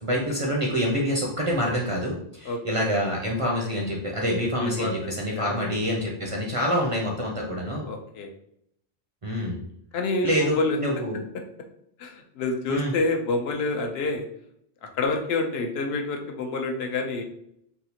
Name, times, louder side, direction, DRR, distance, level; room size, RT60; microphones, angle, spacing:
voice 1, 0.0-7.9 9.2-9.6 10.2-11.2 12.7-12.9, equal, 40° right, -2 dB, 0.5 m, -26 dB
voice 2, 4.6-4.9 5.2-5.5 7.9-8.3 9.9-10.8 12.0-14.2 14.8-17.2, left 3 dB, 75° left, 4 dB, 0.8 m, -27 dB
3.5 x 2.4 x 2.8 m, 0.71 s
omnidirectional pair, 1.1 m